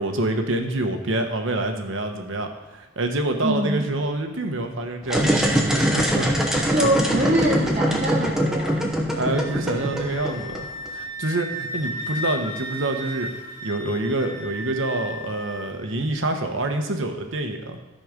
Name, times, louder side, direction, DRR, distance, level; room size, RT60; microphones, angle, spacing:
voice 1, 0.0-6.3 9.1-10.7 10.9-17.8, right 2 dB, 65° right, 5 dB, 1.1 m, -26 dB
voice 2, 3.4-3.8 6.7-8.9, equal, 35° right, -4 dB, 1.0 m, -24 dB
sound 1, 5.0-10.9, equal, ahead, 0.9 m, -23 dB
Wind instrument woodwind instrument, 9.3-15.7, equal, 85° left, 1.9 m, -35 dB
13.0 x 4.3 x 5.2 m, 1.1 s
head